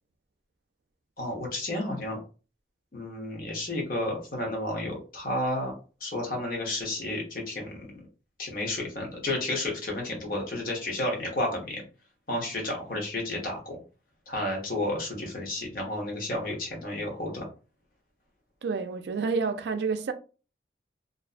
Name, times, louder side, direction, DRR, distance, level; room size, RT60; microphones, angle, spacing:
voice 1, 1.2-2.2 2.9-5.7 6.0-8.0 8.4-11.8 12.3-13.8 14.3-17.5, left 1 dB, 55° left, 0.9 m, -31 dB
voice 2, 18.6-20.1, right 4 dB, 75° right, 0.3 m, -29 dB
2.5 x 2.1 x 2.4 m
head